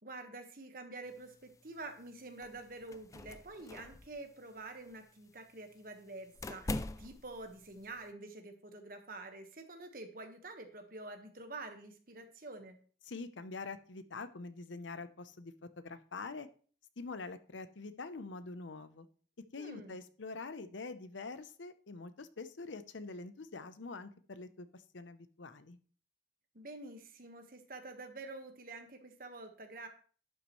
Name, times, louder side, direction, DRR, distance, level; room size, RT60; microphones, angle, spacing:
voice 1, 0.0-12.8 19.6-20.0 26.5-29.9, right 2 dB, 50° right, 5 dB, 1.4 m, -48 dB
sound 1, 1.1-8.1, left 2 dB, 15° left, 0.3 m, -45 dB
voice 2, 13.1-16.5 17.0-19.1 19.5-25.8, left 3 dB, 85° left, 12 dB, 0.8 m, -45 dB
11.5 x 8.3 x 3.2 m, 0.42 s
head